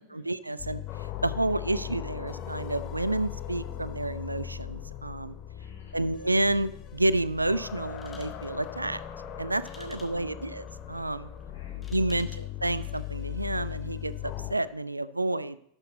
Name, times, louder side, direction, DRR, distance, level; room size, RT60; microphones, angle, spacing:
voice 1, 0.0-5.4 5.9-9.0 9.4-11.3 11.9-15.6, right 2 dB, 85° right, 17 dB, 0.3 m, -30 dB
sound 1, 0.6-14.5, left 11 dB, 35° left, 1.1 m, -38 dB
voice 2, 5.4-6.2 9.8-10.5 11.2-12.3, left 3 dB, 70° left, -2 dB, 4.2 m, -57 dB
sound 2, 7.9-13.8, left 3 dB, 10° left, 1.4 m, -57 dB
12.0 x 6.2 x 4.1 m, 0.72 s
figure-of-eight pair, 90°, 0 cm